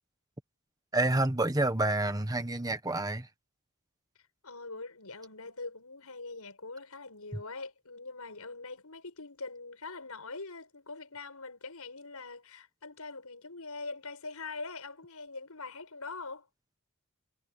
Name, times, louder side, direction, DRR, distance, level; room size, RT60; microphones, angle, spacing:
voice 1, 0.9-3.3 7.3-7.4, right 2 dB, 15° right, 1.4 m, -28 dB
voice 2, 4.4-16.5, left 3 dB, 85° left, 6.0 m, -43 dB
head